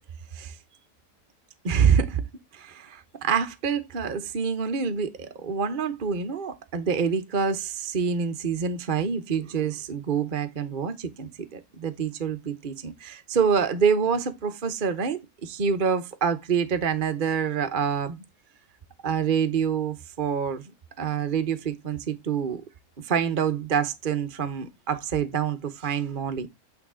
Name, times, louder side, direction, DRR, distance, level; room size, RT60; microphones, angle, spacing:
voice 1, 1.6-2.2 2.5-18.2 19.0-20.6 21.0-22.6 23.0-26.5, right 6 dB, 40° right, 0.9 m, -26 dB
8.8 x 4.0 x 3.6 m
omnidirectional pair, 1.7 m